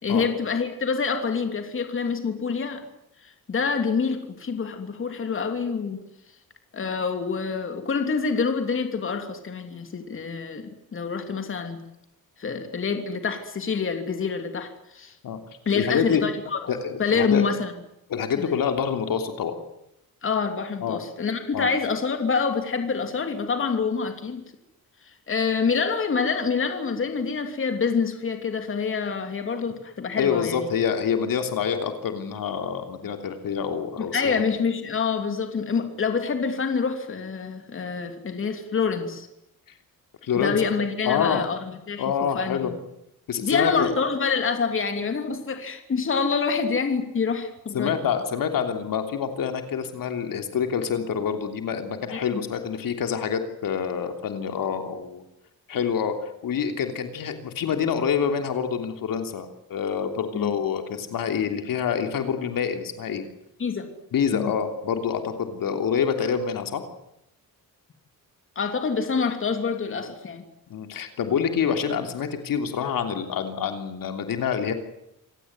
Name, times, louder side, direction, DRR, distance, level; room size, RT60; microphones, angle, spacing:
voice 1, 0.0-2.8 3.2-6.0 6.7-11.8 12.4-15.1 15.6-16.6 17.0-17.7 18.4-18.6 20.2-24.4 25.3-30.7 34.0-39.3 40.3-42.0 42.3-42.8 43.4-48.0 52.1-52.4 60.3-60.5 63.6-63.9 64.3-64.5 68.5-70.4, left 5 dB, 35° left, 6 dB, 3.0 m, -26 dB
voice 2, 15.7-16.2 16.7-17.4 18.1-19.6 20.8-21.0 21.5-21.7 30.2-34.3 40.2-40.7 41.0-41.5 42.0-42.7 43.3-43.9 47.7-55.2 55.7-63.2 64.1-66.8 70.7-74.7, left 7 dB, 70° left, 6 dB, 3.3 m, -26 dB
27.5 x 17.5 x 9.7 m, 0.83 s
wide cardioid pair, 170°, 35 cm